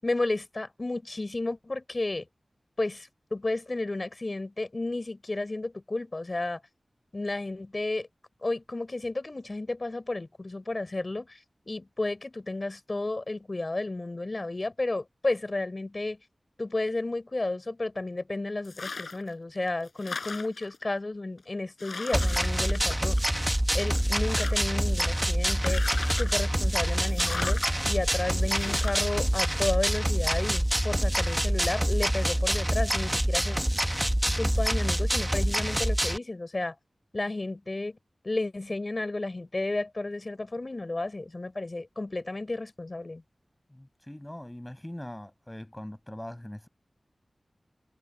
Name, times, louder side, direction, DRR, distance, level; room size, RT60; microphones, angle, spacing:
voice 1, 0.0-2.3 2.8-6.6 7.1-8.1 8.4-11.4 11.7-16.2 16.6-23.2 23.7-25.8 26.1-27.6 27.9-33.6 34.3-36.7 37.1-38.0 38.2-43.2, left 2 dB, 45° left, 6.7 m, -32 dB
sound 1, 18.6-19.3 19.7-20.8 21.4-21.5 21.8-23.5 23.9-24.8 25.5-26.4 27.1-27.7 28.5-29.1, left 4 dB, 80° left, 6.0 m, -38 dB
sound 2, 22.1-36.2, equal, 10° right, 1.5 m, -26 dB
voice 2, 43.7-46.7, left 1 dB, 15° left, 5.8 m, -41 dB
wide cardioid pair, 55°, 0 cm